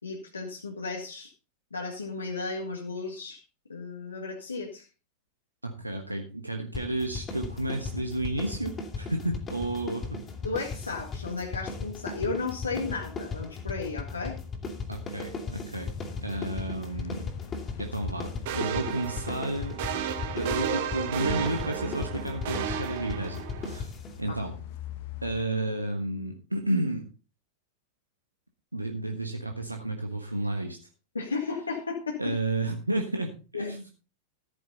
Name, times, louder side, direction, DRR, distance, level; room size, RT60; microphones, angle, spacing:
voice 1, 0.0-1.3 1.7-3.4 3.7-4.9 10.4-14.4 24.3-24.4 31.1-32.4 33.5-33.7, left 4 dB, 75° left, 0 dB, 1.9 m, -34 dB
voice 2, 5.6-10.2 14.9-15.9 16.2-17.3 17.8-19.8 20.3-23.9 24.2-24.5 25.2-27.0 28.7-30.8 32.2-33.8, right 1 dB, 85° right, 4 dB, 1.4 m, -31 dB
sound 1, 6.7-24.2, left 4 dB, 20° left, 2.8 m, -37 dB
sound 2, 15.8-25.4, left 11 dB, 50° left, 1.3 m, -44 dB
sound 3, 18.5-23.8, right 9 dB, 50° right, 1.5 m, -33 dB
14.0 x 9.5 x 4.0 m, 0.32 s
figure-of-eight pair, 90°, 0 cm